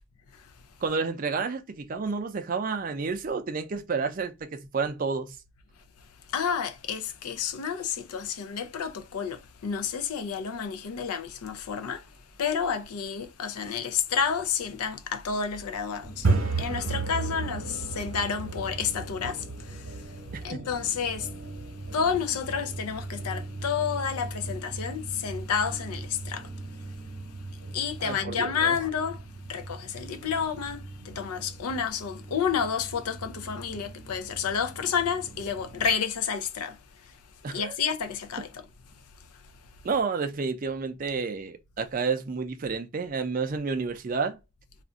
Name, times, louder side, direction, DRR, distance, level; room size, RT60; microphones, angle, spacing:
voice 1, 0.8-5.4 20.5-20.6 28.0-28.7 37.4-37.7 39.8-44.4, right 4 dB, 40° right, 0.4 m, -30 dB
voice 2, 6.0-38.7 39.2-39.7, left 7 dB, 90° left, 0.5 m, -31 dB
sound 1, 16.0-35.9, right 3 dB, 65° right, 0.9 m, -36 dB
2.5 x 2.2 x 3.6 m
head